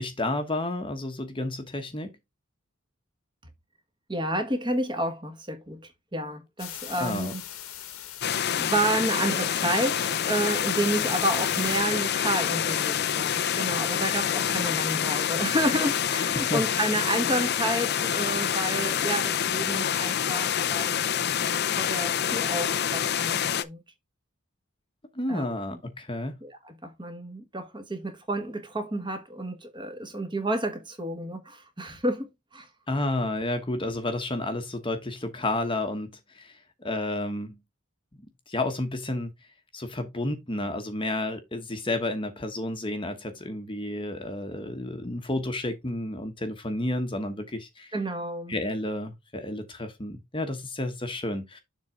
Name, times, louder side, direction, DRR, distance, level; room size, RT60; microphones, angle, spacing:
voice 1, 0.0-2.1 7.0-7.3 16.3-16.6 25.1-26.3 32.9-37.6 38.5-39.3 39.7-47.9 48.5-51.6, left 1 dB, 25° left, 1.1 m, -31 dB
voice 2, 4.1-5.8 6.1-7.4 8.5-21.1 21.8-23.8 25.3-25.6 26.4-32.7 47.9-48.5, right 1 dB, 20° right, 1.4 m, -30 dB
sound 1, 6.6-11.8, left 11 dB, 80° left, 1.3 m, -40 dB
sound 2, 8.2-23.6, left 9 dB, 50° left, 0.5 m, -27 dB
7.3 x 3.6 x 4.9 m
head